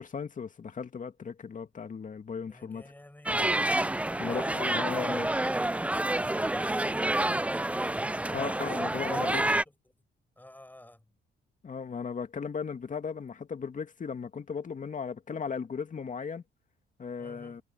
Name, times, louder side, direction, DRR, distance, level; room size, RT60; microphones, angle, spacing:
voice 1, 0.0-2.8 4.2-5.3 8.3-9.4 11.6-16.4 17.0-17.6, left 6 dB, 40° left, 2.2 m, -36 dB
voice 2, 2.5-3.5 4.2-8.5 8.9-9.4 9.7-9.9 10.4-11.2 17.2-17.6, left 1 dB, 10° left, 7.1 m, -51 dB
sound 1, 3.3-9.6, right 1 dB, 5° right, 0.6 m, -28 dB
cardioid pair, 90°, 20 cm